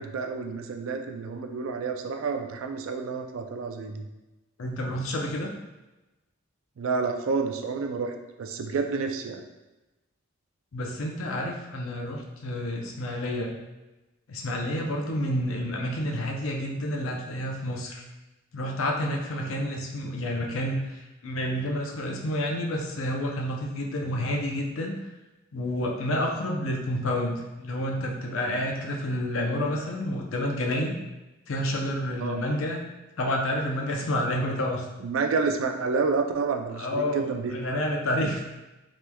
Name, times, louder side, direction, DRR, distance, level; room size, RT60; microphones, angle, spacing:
voice 1, 0.0-4.1 6.8-8.1 8.4-9.4 32.2-32.4 35.0-37.6, right 4 dB, 65° right, 5 dB, 0.4 m, -29 dB
voice 2, 4.6-5.5 10.7-13.5 14.3-18.0 18.5-24.9 25.5-30.9 31.5-32.8 33.2-34.8 36.8-38.4, left 1 dB, 70° left, 0 dB, 0.5 m, -29 dB
3.3 x 3.0 x 2.2 m, 1.0 s
head